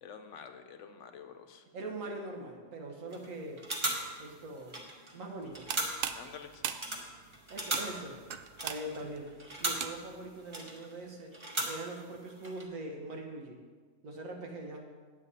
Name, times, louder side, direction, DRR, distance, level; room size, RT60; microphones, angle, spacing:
voice 1, 0.0-1.6 6.1-6.6, left 7 dB, 70° left, 7 dB, 1.0 m, -48 dB
voice 2, 1.7-3.6 4.2-4.8 5.1-5.7 7.5-8.2 8.6-9.3 9.6-11.3 11.7-13.6 14.0-14.9, right 2 dB, 90° right, 1 dB, 1.6 m, -42 dB
sound 1, 3.1-3.3 3.6-5.2 5.5-6.3 6.7-10.0 10.5-11.0 11.3-12.1 12.4-12.6, right 1 dB, 25° right, 1.1 m, -37 dB
sound 2, 5.4-10.3, right 8 dB, 65° right, 0.5 m, -40 dB
9.0 x 8.0 x 4.1 m, 1.5 s
omnidirectional pair, 1.4 m